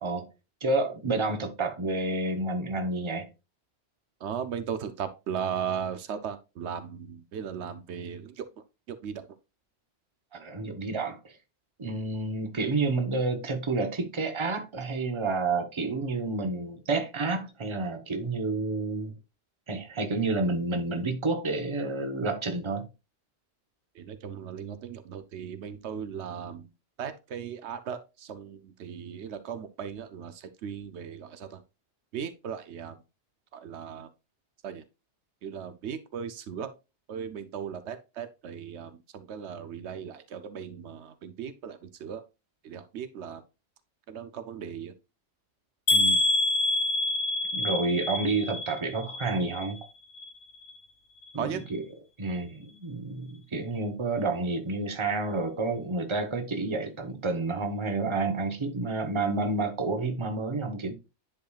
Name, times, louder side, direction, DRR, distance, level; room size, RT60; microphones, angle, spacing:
voice 1, 0.6-3.3 10.3-11.3 11.8-19.1 19.7-22.9 45.9-46.2 47.5-49.8 51.3-51.8 52.2-60.9, right 3 dB, 30° right, 1.0 m, -29 dB
voice 2, 4.2-8.5 8.9-9.3 23.9-26.7 27.0-31.6 32.1-33.0 33.5-34.1 34.6-34.8 35.4-36.7 37.1-42.2 42.6-43.4 44.1-44.9 51.4-51.6, right 7 dB, 80° right, 1.0 m, -37 dB
sound 1, 45.9-49.8 50.1-50.8 51.2-51.4 51.7-51.8, left 2 dB, 85° left, 1.3 m, -27 dB
10.0 x 4.7 x 2.4 m
omnidirectional pair, 1.1 m